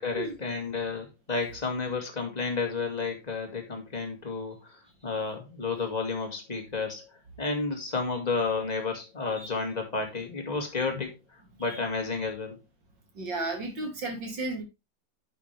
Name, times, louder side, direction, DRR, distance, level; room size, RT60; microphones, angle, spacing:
voice 1, 0.0-7.1 7.4-11.1 11.6-12.6, left 4 dB, 20° left, 2.2 m, -31 dB
voice 2, 13.1-14.6, right 2 dB, 65° right, 3.3 m, -34 dB
9.9 x 6.9 x 3.3 m
omnidirectional pair, 2.1 m